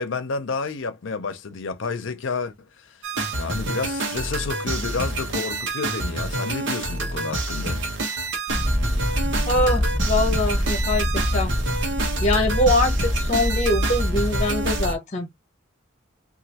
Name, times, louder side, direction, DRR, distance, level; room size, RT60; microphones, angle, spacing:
voice 1, 0.0-2.5 2.9-3.0 3.4-7.8, left 4 dB, 75° left, 0.6 m, -30 dB
sound 1, 3.0-14.9, right 2 dB, 70° right, 1.0 m, -28 dB
sound 2, 8.5-14.9, equal, ahead, 0.6 m, -25 dB
voice 2, 9.4-11.5 12.2-15.3, left 1 dB, 35° left, 1.0 m, -23 dB
3.0 x 2.5 x 2.8 m
head